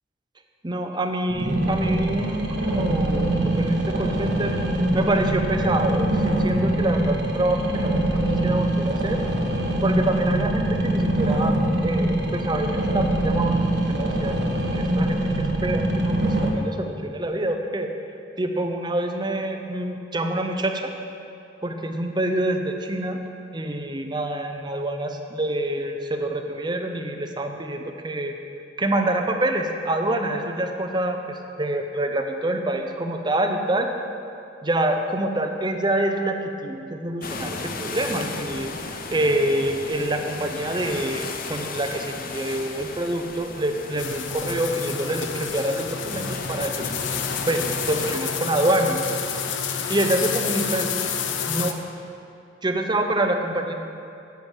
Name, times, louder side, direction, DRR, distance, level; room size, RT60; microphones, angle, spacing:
voice 1, 0.6-4.6 4.9-9.2 9.8-11.6 11.8-17.9 18.4-20.9 21.6-23.2 23.5-28.3 28.8-33.9 34.6-38.7 39.1-46.9 47.5-49.0 49.9-50.9 51.5-51.8 52.6-53.7, right 1 dB, 25° right, 5 dB, 0.7 m, -26 dB
sound 1, 1.3-16.5, right 1 dB, 65° right, 1.3 m, -23 dB
sound 2, 37.2-48.2, left 4 dB, 50° left, 0.7 m, -35 dB
sound 3, 44.0-51.7, left 6 dB, 85° left, 0.7 m, -29 dB
10.5 x 7.8 x 5.5 m, 2.5 s
head